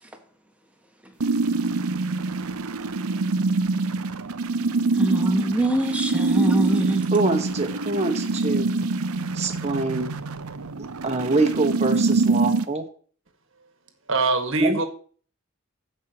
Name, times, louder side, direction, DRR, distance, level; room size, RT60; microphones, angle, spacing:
sound 1, 1.2-12.6, right 3 dB, 80° right, 0.7 m, -25 dB
voice 1, 5.0-7.0, right 1 dB, 5° right, 1.4 m, -23 dB
voice 2, 7.1-8.7 9.3-10.1 11.0-12.8 14.6-14.8, right 2 dB, 30° right, 1.3 m, -24 dB
voice 3, 14.1-14.9, right 3 dB, 60° right, 1.6 m, -23 dB
15.5 x 5.5 x 2.9 m
head